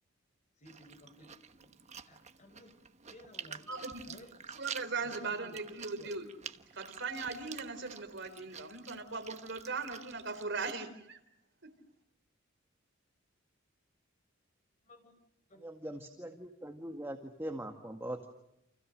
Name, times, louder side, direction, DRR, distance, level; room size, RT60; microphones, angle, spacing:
voice 1, 0.6-1.7 2.0-2.8 3.1-4.4 5.0-6.2 14.8-15.2 15.5-15.7, left 1 dB, 35° left, 8 dB, 4.6 m, -57 dB
Chewing mastication, 0.7-10.7, right 7 dB, 35° right, 1.2 m, -49 dB
voice 2, 3.7-4.0 4.5-6.3 6.7-11.2 11.6-11.7, right 4 dB, 60° right, 8 dB, 4.1 m, -39 dB
voice 3, 15.6-18.3, right 1 dB, 10° right, 4 dB, 1.9 m, -41 dB
29.5 x 28.5 x 6.5 m, 0.81 s
head